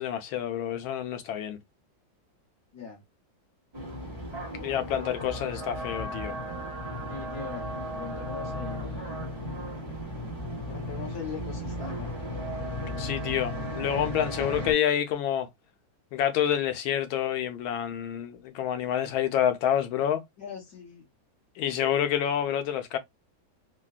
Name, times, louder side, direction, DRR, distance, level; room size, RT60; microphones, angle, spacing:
voice 1, 0.0-1.6 4.6-6.4 13.0-15.5 16.1-20.2 21.6-23.0, left 10 dB, 85° left, 1.5 m, -28 dB
sound 1, 3.7-14.7, equal, 40° right, 0.3 m, -35 dB
voice 2, 7.1-7.7 8.0-9.2 10.6-12.1 14.4-14.6 20.4-21.1, left 6 dB, 55° left, 1.6 m, -41 dB
3.8 x 2.2 x 2.3 m
omnidirectional pair, 2.2 m